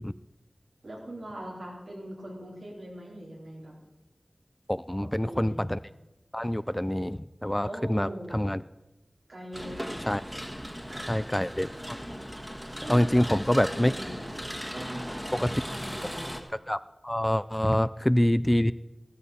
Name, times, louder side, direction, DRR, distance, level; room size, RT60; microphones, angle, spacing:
voice 1, 0.8-3.8 5.0-5.7 7.6-8.4 9.3-10.1 10.8-11.2 12.8-14.4 14.7-16.3, right 1 dB, 85° right, -4 dB, 4.2 m, -41 dB
voice 2, 4.7-5.8 6.3-8.6 10.1-10.2 11.1-12.0 12.9-13.9 15.3-15.5 16.7-16.8 17.0-18.7, left 1 dB, 15° left, 16 dB, 0.3 m, -26 dB
sound 1, 9.5-16.4, equal, 5° right, 1.5 m, -37 dB
15.0 x 13.0 x 4.3 m, 1.0 s
wide cardioid pair, 60°, 0 cm